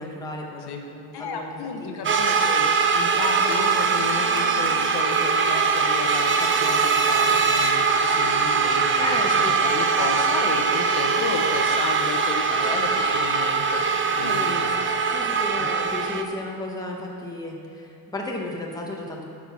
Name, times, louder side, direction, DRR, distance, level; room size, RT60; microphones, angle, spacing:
voice 1, 0.0-2.1 9.0-9.6 14.2-14.7 15.1-19.2, left 2 dB, 10° left, -1 dB, 1.1 m, -34 dB
voice 2, 1.1-2.7 2.9-6.8 7.1-14.9 15.6-15.7, left 5 dB, 70° left, 3 dB, 1.1 m, -33 dB
sound 1, 2.0-16.2, right 5 dB, 30° right, 0.5 m, -22 dB
10.0 x 6.1 x 5.9 m, 2.5 s
cardioid pair, 155°, 41 cm